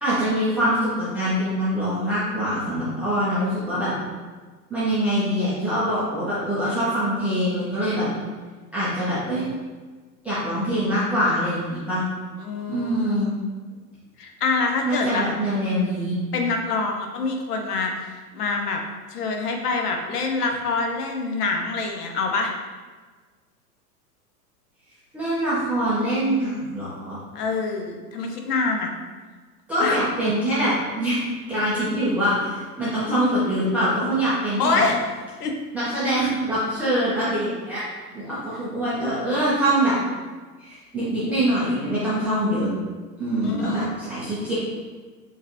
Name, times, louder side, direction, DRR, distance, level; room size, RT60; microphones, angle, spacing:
voice 1, 0.0-3.9 4.7-8.1 8.7-9.5 10.2-12.0 12.7-13.3 14.8-16.1 25.1-27.2 29.7-31.2 31.5-34.8 35.7-37.9 38.1-39.9 40.6-42.7 43.2-44.5, equal, 5° right, -12 dB, 0.3 m, -24 dB
voice 2, 12.4-13.2 14.2-15.3 16.3-18.8 19.1-22.5 27.3-28.9 29.8-30.0 30.2-30.3 34.6-35.0 35.4-35.5 43.4-44.0, left 4 dB, 70° left, 3 dB, 0.8 m, -25 dB
4.5 x 2.4 x 2.9 m, 1.4 s
figure-of-eight pair, 95°, 49 cm